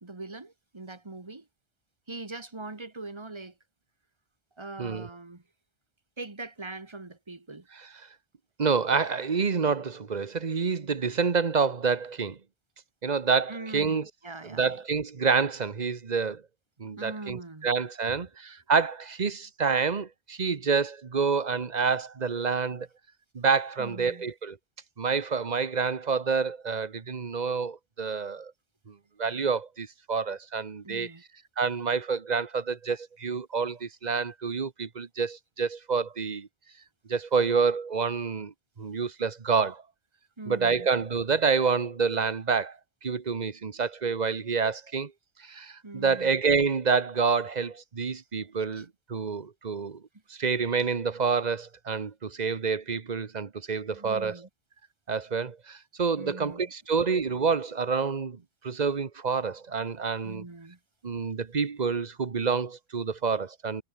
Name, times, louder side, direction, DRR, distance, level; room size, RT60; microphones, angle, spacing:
voice 1, 0.0-1.5 2.1-3.5 4.6-5.4 6.2-7.7 13.5-14.8 17.0-17.7 18.1-18.3 23.8-24.3 30.8-31.2 40.4-40.9 45.8-46.3 48.6-48.8 53.9-54.5 56.2-56.7 60.2-60.8, right 3 dB, 25° right, 1.8 m, -42 dB
voice 2, 8.6-12.4 13.0-14.0 14.4-16.4 16.8-22.9 23.3-24.6 25.0-28.5 28.9-31.1 31.6-36.5 37.1-39.8 40.5-45.1 45.4-50.0 50.3-54.4 55.1-60.4 61.0-63.8, right 5 dB, 40° right, 1.2 m, -28 dB
omnidirectional pair, 1.2 m